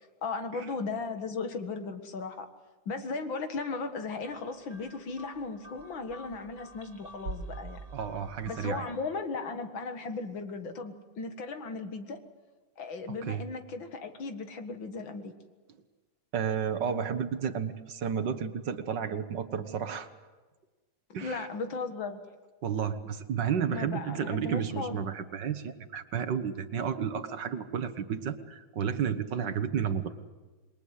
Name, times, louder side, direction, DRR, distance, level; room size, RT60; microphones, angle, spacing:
voice 1, 0.2-2.5 2.9-7.8 8.5-12.2 12.8-15.3 21.2-22.2 23.7-25.1 29.4-29.6, left 4 dB, 70° left, 7 dB, 2.5 m, -36 dB
sound 1, 4.2-9.0, right 2 dB, 45° right, 4.2 m, -45 dB
voice 2, 7.9-8.9 13.2-13.4 16.3-20.1 21.1-21.5 22.6-30.1, right 7 dB, 60° right, 10 dB, 1.8 m, -32 dB
27.5 x 22.0 x 8.2 m, 1.3 s
omnidirectional pair, 2.2 m